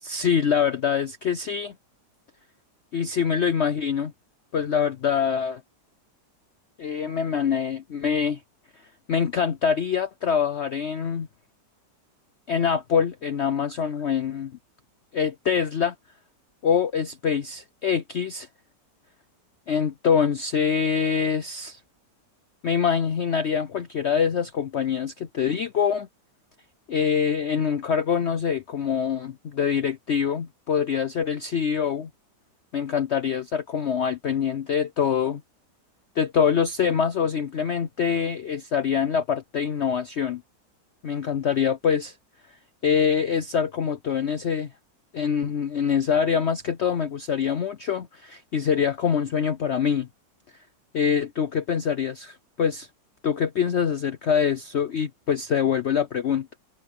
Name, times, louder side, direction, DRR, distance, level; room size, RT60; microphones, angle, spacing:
voice 1, 0.0-1.7 2.9-4.1 4.5-5.6 6.8-8.4 9.1-11.3 12.5-14.5 15.1-15.9 16.6-18.5 19.7-21.8 22.6-26.1 26.9-32.1 32.7-35.4 36.2-40.4 41.0-42.1 42.8-44.7 45.1-50.1 50.9-52.9 53.2-56.5, left 7 dB, 65° left, 0.7 m, -24 dB
omnidirectional pair, 1.9 m